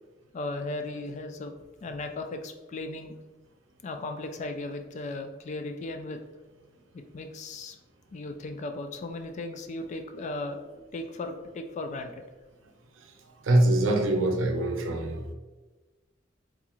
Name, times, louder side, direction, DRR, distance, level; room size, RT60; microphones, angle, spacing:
voice 1, 0.3-1.5 1.8-3.2 3.8-6.2 6.9-7.8 8.1-12.2, left 2 dB, 35° left, 5 dB, 0.3 m, -36 dB
voice 2, 13.4-15.3, right 1 dB, 85° right, 3 dB, 0.5 m, -24 dB
3.6 x 2.4 x 3.0 m, 1.2 s
head